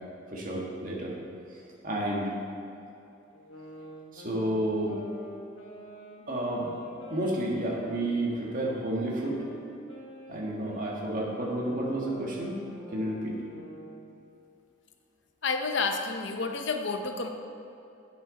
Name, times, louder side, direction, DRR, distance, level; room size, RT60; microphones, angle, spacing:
voice 1, 0.3-1.1 1.8-2.3 4.1-5.0 6.3-6.8 7.1-9.4 10.3-12.6 12.9-13.4, right 1 dB, 45° right, -3 dB, 1.8 m, -30 dB
sound 1, 3.3-8.7 9.2-14.1, equal, 85° left, 1.4 m, -46 dB
voice 2, 15.4-17.3, left 4 dB, 65° left, 5 dB, 0.8 m, -30 dB
10.0 x 8.7 x 4.1 m, 2.8 s
head